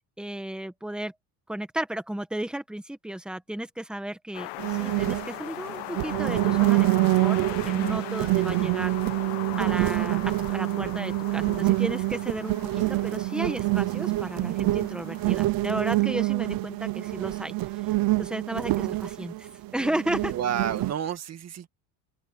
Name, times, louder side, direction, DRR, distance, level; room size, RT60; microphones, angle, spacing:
voice 1, 0.2-1.1 1.5-7.4 7.7-8.9 9.6-17.5 17.8-20.3, right 1 dB, ahead, 1.5 m, -34 dB
sound 1, 4.3-15.4, left 19 dB, 70° left, 1.3 m, -40 dB
sound 2, 4.6-20.9, right 20 dB, 55° right, 0.9 m, -26 dB
voice 2, 20.3-21.7, right 9 dB, 35° right, 2.1 m, -30 dB
open air
cardioid pair, 150°, 43 cm